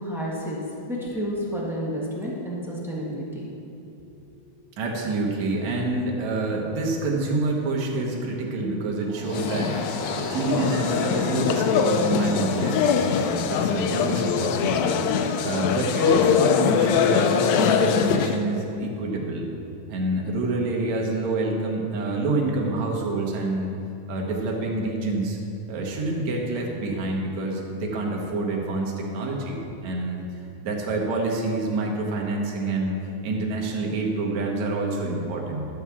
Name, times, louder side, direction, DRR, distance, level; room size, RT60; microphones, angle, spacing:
voice 1, 0.0-3.5 4.0-4.1, equal, ahead, -6 dB, 0.6 m, -30 dB
voice 2, 4.8-15.0 15.4-19.5 19.9-23.7 24.1-25.4 25.7-30.2 30.6-35.7, right 2 dB, 70° right, -1 dB, 2.5 m, -27 dB
sound 1, 9.1-15.0, right 6 dB, 90° right, 2.1 m, -40 dB
sound 2, 9.2-18.4, left 7 dB, 80° left, 1.9 m, -23 dB
12.5 x 4.8 x 7.1 m, 2.7 s
omnidirectional pair, 3.4 m